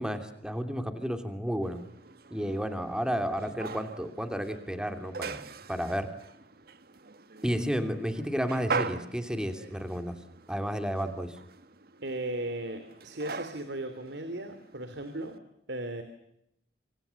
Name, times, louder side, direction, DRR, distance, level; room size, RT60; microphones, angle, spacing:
voice 1, 0.0-1.8 2.3-5.4 5.7-6.1 7.4-10.1 10.5-11.4, equal, 5° right, 7 dB, 2.9 m, -32 dB
sound 1, 1.6-15.4, right 4 dB, 60° right, 1.5 m, -41 dB
voice 2, 12.0-15.4 15.7-16.0, right 1 dB, 85° right, 9 dB, 3.0 m, -36 dB
26.5 x 26.5 x 7.1 m, 0.78 s
head